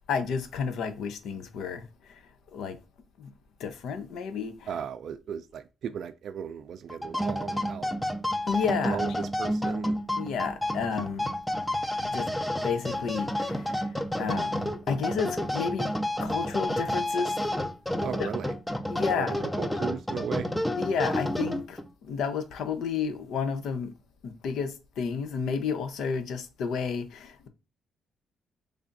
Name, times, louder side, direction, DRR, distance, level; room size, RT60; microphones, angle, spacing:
voice 1, 0.1-2.2 2.5-2.8 3.2-3.3 3.6-4.7 8.5-9.0 10.2-11.3 12.0-12.3 12.6-15.9 16.2-17.4 18.0-18.3 18.9-19.4 20.8-23.9 24.2-27.5, left 6 dB, 75° left, 0.6 m, -31 dB
voice 2, 4.7-7.9 8.8-10.0 11.6-11.7 18.0-18.5 19.1-20.5, right 8 dB, 65° right, 0.3 m, -36 dB
sound 1, 6.9-21.9, left 1 dB, 5° left, 0.4 m, -30 dB
3.3 x 2.5 x 3.9 m
cardioid pair, 90°, 0 cm